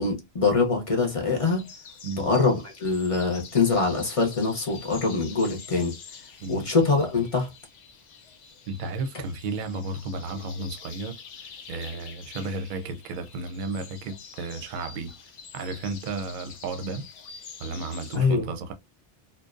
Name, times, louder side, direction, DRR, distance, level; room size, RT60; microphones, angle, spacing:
voice 1, 0.0-1.7 2.2-5.9 6.5-7.5 18.1-18.5, left 4 dB, 40° left, 0.6 m, -24 dB
sound 1, 1.4-18.2, left 6 dB, 75° left, 0.9 m, -46 dB
voice 2, 2.0-2.3 6.4-6.7 8.7-15.1 15.5-17.1 17.6-18.7, right 3 dB, 55° right, 0.6 m, -33 dB
2.5 x 2.0 x 2.4 m
omnidirectional pair, 1.1 m